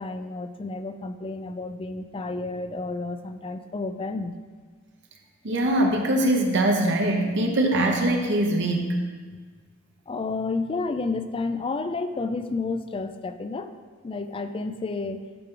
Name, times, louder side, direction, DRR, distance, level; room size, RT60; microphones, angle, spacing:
voice 1, 0.0-4.4 10.1-13.7 14.0-15.2, left 3 dB, 25° left, 10 dB, 0.4 m, -31 dB
voice 2, 5.4-8.9, right 1 dB, 60° right, 2 dB, 0.9 m, -22 dB
12.0 x 4.5 x 3.8 m, 1.5 s
head